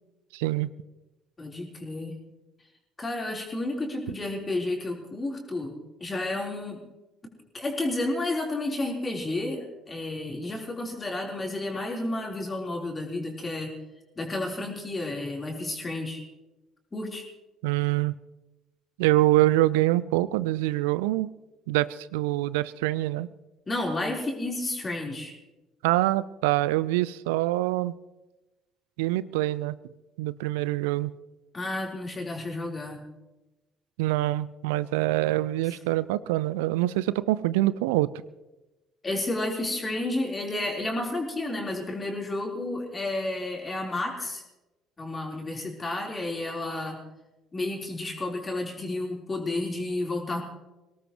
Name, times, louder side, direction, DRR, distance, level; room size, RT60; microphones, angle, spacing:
voice 1, 0.3-0.7 17.6-18.1 19.0-21.3 21.7-23.3 25.8-27.9 29.0-29.8 30.2-31.1 34.0-38.1, right 17 dB, 70° right, 18 dB, 0.5 m, -25 dB
voice 2, 1.4-2.2 3.0-6.8 7.5-13.7 14.2-16.2 16.9-17.2 23.7-25.4 31.5-33.0 35.7-35.8 39.0-44.4 45.0-47.0 47.5-50.4, left 2 dB, 25° left, 0 dB, 3.8 m, -31 dB
23.0 x 18.0 x 3.1 m, 1.0 s
figure-of-eight pair, 50°, 0 cm